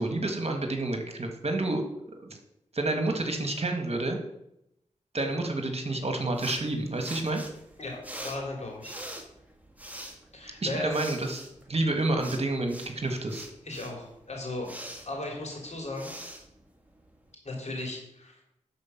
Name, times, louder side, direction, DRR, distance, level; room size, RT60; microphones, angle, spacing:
voice 1, 0.0-1.8 2.2-2.3 2.7-4.2 5.1-7.4 10.6-11.4 11.7-13.5, right 2 dB, 50° right, 4 dB, 1.6 m, -29 dB
sound 1, 6.3-17.3, right 1 dB, 10° right, 1.8 m, -44 dB
voice 2, 7.8-9.0 10.3-11.0 12.9-13.0 13.6-14.7 15.1-16.2 17.4-18.4, left 2 dB, 60° left, -1 dB, 3.3 m, -36 dB
11.0 x 4.5 x 5.8 m, 0.80 s
cardioid pair, 40°, 13 cm